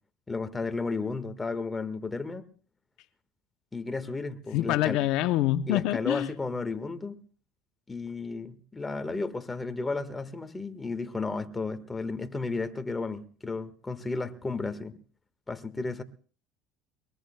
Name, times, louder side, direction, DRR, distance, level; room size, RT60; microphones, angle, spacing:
voice 1, 0.3-2.5 3.7-5.0 5.7-7.2 7.9-15.0 15.5-16.0, left 3 dB, 15° left, 1.6 m, -33 dB
voice 2, 4.5-6.3, left 14 dB, 70° left, 0.7 m, -25 dB
23.0 x 22.0 x 2.3 m
supercardioid pair, 100°, 0 cm